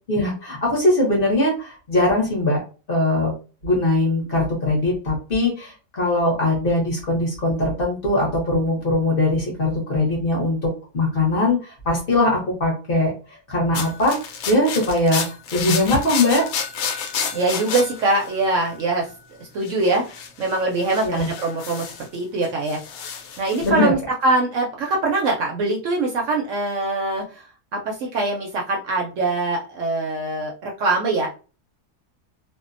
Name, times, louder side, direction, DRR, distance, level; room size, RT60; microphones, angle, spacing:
voice 1, 0.1-2.6 2.9-3.3 3.6-10.7 10.9-13.1 13.5-14.1 14.5-15.2 15.5-16.4 21.0-21.3 23.6-23.9, left 2 dB, 45° left, -2 dB, 0.9 m, -21 dB
sound 1, 13.7-19.0 19.6-22.2 22.4-23.7, left 6 dB, 75° left, 1.0 m, -31 dB
voice 2, 17.3-19.1 19.4-20.0 20.4-21.9 22.1-22.8 23.4-27.5 27.7-31.3, right 2 dB, 70° right, 0 dB, 0.7 m, -23 dB
2.6 x 2.1 x 2.5 m, 0.34 s
omnidirectional pair, 1.7 m